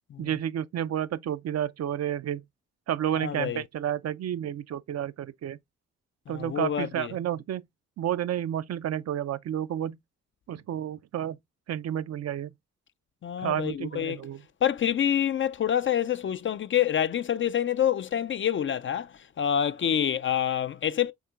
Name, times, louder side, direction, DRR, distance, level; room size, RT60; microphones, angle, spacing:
voice 1, 0.2-2.4 2.9-5.6 6.3-7.6 8.0-10.0 10.5-11.4 11.7-12.5 13.4-14.4, right 10 dB, 50° right, 0.5 m, -31 dB
voice 2, 3.1-3.6 6.3-7.1 13.2-14.2 14.6-19.1 19.4-21.1, left 9 dB, 40° left, 0.4 m, -27 dB
5.8 x 3.6 x 2.3 m
hypercardioid pair, 40°, 34 cm